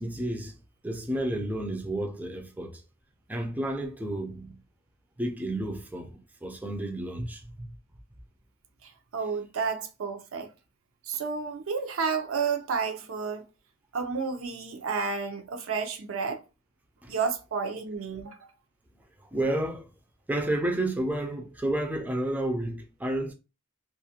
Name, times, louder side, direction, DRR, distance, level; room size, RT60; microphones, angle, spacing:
voice 1, 0.0-2.8 3.3-4.6 5.2-7.5 17.0-17.1 19.2-19.9 20.3-23.3, right 1 dB, 10° right, 0.3 m, -31 dB
voice 2, 8.8-10.5 11.0-13.5 13.9-16.4 17.1-18.5, right 5 dB, 85° right, 0.5 m, -31 dB
2.3 x 2.1 x 2.8 m
head